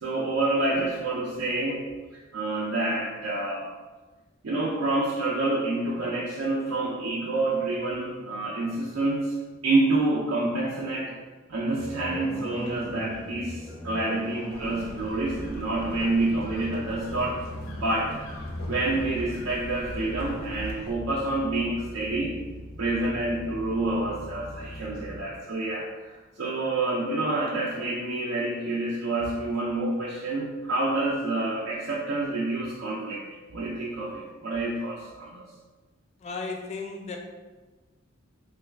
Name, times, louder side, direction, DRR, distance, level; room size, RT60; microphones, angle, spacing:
voice 1, 0.0-1.8 2.1-3.7 4.4-9.4 9.6-11.2 11.5-17.4 17.7-18.2 18.7-22.3 22.8-33.3 33.5-35.5, right 2 dB, 80° right, -4 dB, 0.4 m, -28 dB
sound 1, 11.8-25.2, equal, 20° right, 0.6 m, -40 dB
sound 2, 14.5-20.9, left 1 dB, 80° left, 0.5 m, -40 dB
voice 2, 36.2-37.2, left 4 dB, 30° left, 2 dB, 0.3 m, -34 dB
3.2 x 2.2 x 3.3 m, 1.3 s
head